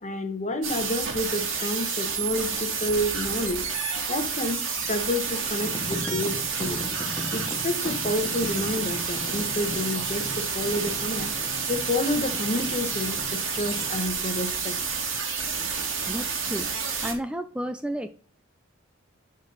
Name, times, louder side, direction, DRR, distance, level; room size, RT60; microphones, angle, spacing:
voice 1, 0.0-3.6 4.1-6.8 7.3-11.3 11.7-14.7, left 1 dB, 35° left, 8 dB, 1.3 m, -29 dB
sound 1, 0.6-17.1, right 5 dB, 70° right, 2.9 m, -30 dB
sound 2, 5.6-14.0, left 1 dB, 20° left, 0.9 m, -38 dB
voice 2, 16.1-16.7 17.0-18.1, right 1 dB, 5° right, 9 dB, 0.4 m, -31 dB
11.0 x 5.3 x 4.0 m, 0.42 s
head